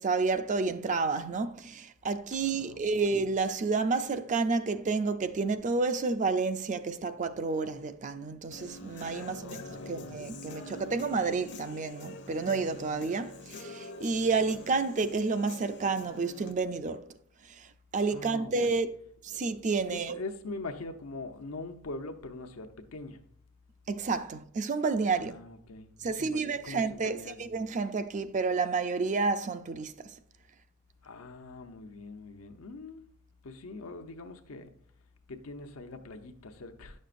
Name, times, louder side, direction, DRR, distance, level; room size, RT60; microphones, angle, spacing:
voice 1, 0.0-17.1 17.5-17.7 17.9-18.9 19.2-20.2 23.9-25.3 26.0-29.9, right 4 dB, 35° right, 0.4 m, -30 dB
voice 2, 2.4-3.1 9.1-10.1 18.1-18.8 19.3-19.4 19.9-23.2 25.1-27.4 31.0-33.1 33.4-34.8 35.3-37.0, left 3 dB, 85° left, 0.8 m, -43 dB
Human voice / Guitar, 8.5-16.5, left 2 dB, 55° left, 0.7 m, -45 dB
9.8 x 6.3 x 2.5 m
head